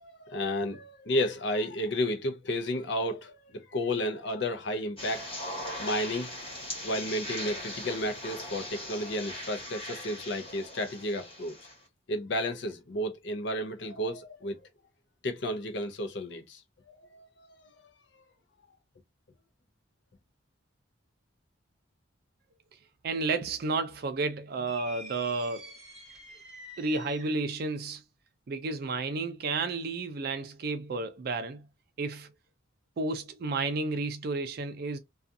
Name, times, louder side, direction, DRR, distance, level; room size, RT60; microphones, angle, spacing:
voice 1, 0.0-6.3 6.8-11.5 12.1-14.6 15.2-16.6 16.9-17.9, left 1 dB, 60° left, 0.6 m, -32 dB
sound 1, 5.0-11.8, left 1 dB, 25° left, 1.1 m, -40 dB
voice 2, 23.0-25.7 26.8-28.0 28.5-31.7 32.0-32.3 33.0-35.0, right 3 dB, 50° right, 0.4 m, -32 dB
sound 2, 24.7-27.5, left 1 dB, 5° right, 0.9 m, -47 dB
2.4 x 2.3 x 2.6 m
head